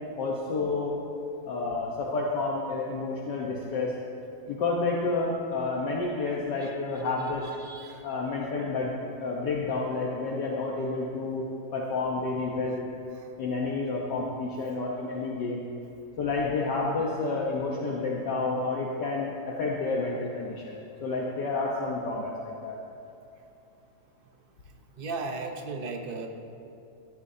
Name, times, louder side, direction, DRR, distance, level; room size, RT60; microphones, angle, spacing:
voice 1, 0.2-0.9 1.4-3.9 4.5-7.4 8.0-8.9 9.2-11.4 11.7-12.8 13.4-15.6 16.2-19.3 19.6-20.7 21.0-22.8, left 3 dB, 65° left, -3 dB, 1.6 m, -30 dB
voice 2, 7.6-8.0 13.1-13.3 25.0-26.3, right 3 dB, 45° right, 3 dB, 0.7 m, -36 dB
16.0 x 13.5 x 2.8 m, 2.7 s
omnidirectional pair, 2.1 m